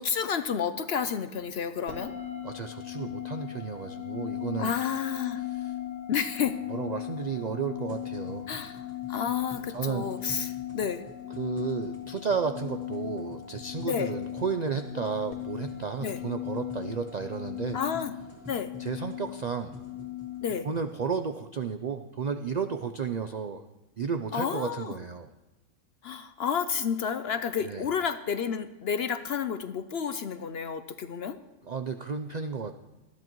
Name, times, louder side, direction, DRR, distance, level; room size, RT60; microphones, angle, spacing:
voice 1, 0.0-2.1 4.6-5.4 6.1-6.6 8.5-11.0 13.9-14.1 16.0-16.2 17.7-18.1 18.5-18.7 20.4-20.7 24.3-25.0 26.0-31.4, left 7 dB, 60° left, 11 dB, 0.7 m, -31 dB
sound 1, 1.9-20.6, left 12 dB, 85° left, 2.1 m, -38 dB
voice 2, 2.4-4.8 5.5-5.7 6.7-8.5 9.7-10.5 11.4-17.8 18.8-19.7 20.6-23.6 24.0-25.3 27.6-27.9 31.6-32.7, right 6 dB, 60° right, 8 dB, 0.4 m, -33 dB
sound 2, 7.8-21.2, equal, 25° right, 3.2 m, -49 dB
19.5 x 13.5 x 3.1 m, 1.1 s
omnidirectional pair, 1.5 m